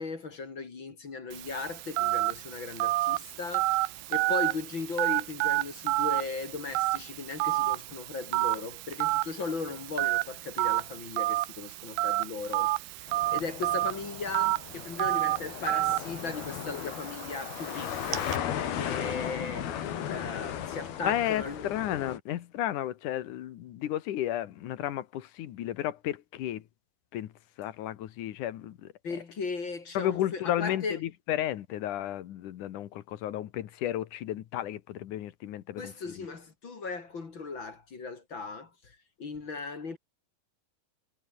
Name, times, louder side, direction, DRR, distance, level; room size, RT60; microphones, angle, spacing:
voice 1, 0.0-3.8 4.1-13.1 13.3-19.7 20.1-21.7 29.0-31.0 35.8-40.0, left 4 dB, 35° left, 2.8 m, -37 dB
Telephone, 1.3-18.4, right 18 dB, 80° right, 2.6 m, -30 dB
sound 1, 13.1-22.2, left 10 dB, 85° left, 4.2 m, -36 dB
voice 2, 21.0-26.6 27.1-27.3 27.6-28.9 29.9-36.3, left 12 dB, 65° left, 2.5 m, -33 dB
omnidirectional pair, 4.3 m